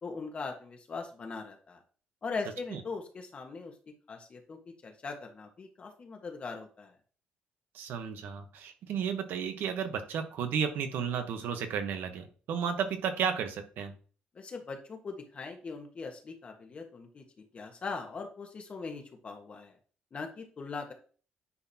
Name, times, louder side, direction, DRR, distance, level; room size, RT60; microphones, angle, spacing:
voice 1, 0.0-1.8 2.2-3.7 4.1-7.0 14.3-19.8 20.1-20.9, left 4 dB, 35° left, 3 dB, 1.3 m, -40 dB
voice 2, 7.7-13.9, right 7 dB, 75° right, 7 dB, 1.1 m, -33 dB
9.7 x 4.0 x 2.8 m, 0.39 s
cardioid pair, 105°, 3 cm